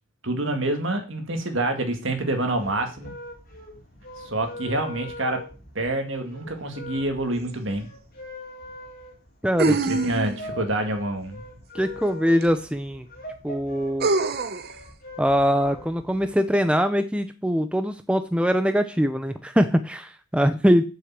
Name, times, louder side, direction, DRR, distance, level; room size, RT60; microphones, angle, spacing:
voice 1, 0.2-3.1 4.2-5.4 5.7-7.9 9.6-11.4, right 2 dB, 60° right, 5 dB, 2.1 m, -27 dB
sound 1, 2.3-16.3, left 2 dB, 40° left, 3.2 m, -42 dB
sound 2, 7.5-7.6 9.6-10.5 12.4-12.5 14.0-14.7, right 3 dB, 45° right, 0.8 m, -24 dB
voice 2, 9.4-9.7 11.7-13.1 13.4-14.1 15.2-20.8, equal, 5° right, 9 dB, 0.5 m, -22 dB
7.9 x 6.7 x 7.4 m, 0.34 s
head